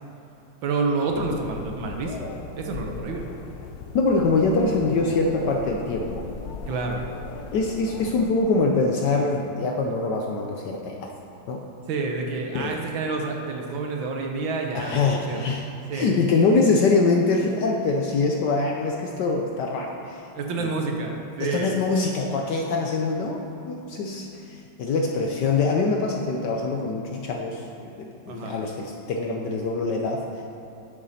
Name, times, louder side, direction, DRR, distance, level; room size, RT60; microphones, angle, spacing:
voice 1, 0.6-2.3 2.6-3.3 6.7-7.0 11.9-15.4 15.9-16.2 20.3-21.8 28.3-28.6, right 3 dB, 70° right, 2 dB, 1.6 m, -28 dB
sound 1, 1.1-8.2, left 4 dB, 85° left, 1.7 m, -38 dB
voice 2, 3.9-6.3 7.5-11.1 11.5-11.6 12.5-12.8 14.7-15.6 15.9-20.3 20.6-20.7 21.4-27.7 28.0-30.4, left 3 dB, 70° left, 1 dB, 1.1 m, -24 dB
9.9 x 7.4 x 4.1 m, 3.0 s
omnidirectional pair, 2.4 m